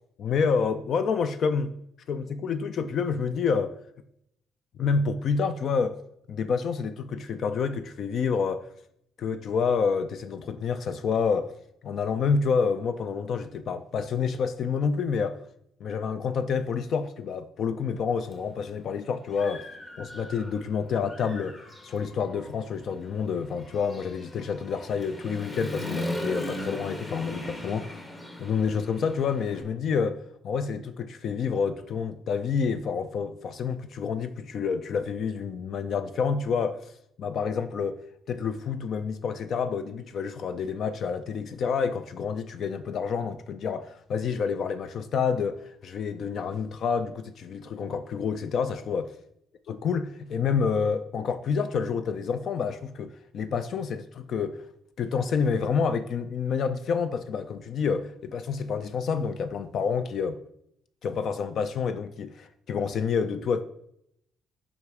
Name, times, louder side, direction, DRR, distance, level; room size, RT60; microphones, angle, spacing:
voice 1, 0.2-1.8 2.1-3.7 4.8-6.0 6.3-8.7 9.2-11.5 11.8-15.4 15.8-19.6 20.0-28.0 28.4-36.9 37.2-38.0 38.3-49.1 49.7-54.7 55.0-60.4 61.0-63.6, left 6 dB, 65° left, 0.4 m, -28 dB
Human voice / Motorcycle, 18.3-18.4 18.9-20.7 21.0-29.6, left 1 dB, 25° left, 1.4 m, -38 dB
5.2 x 4.8 x 4.7 m
cardioid pair, 75°, 0 cm